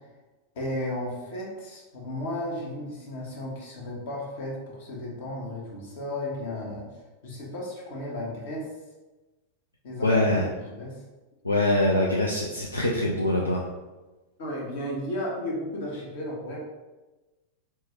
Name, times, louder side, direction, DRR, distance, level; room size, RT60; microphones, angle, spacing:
voice 1, 0.5-6.9 7.2-8.7 9.8-11.0 14.4-16.6, left 1 dB, 55° left, -2 dB, 1.0 m, -34 dB
voice 2, 10.0-10.4 11.4-13.6, left 1 dB, 80° left, -3 dB, 0.4 m, -23 dB
4.3 x 2.2 x 3.1 m, 1.1 s
figure-of-eight pair, 90°, 0 cm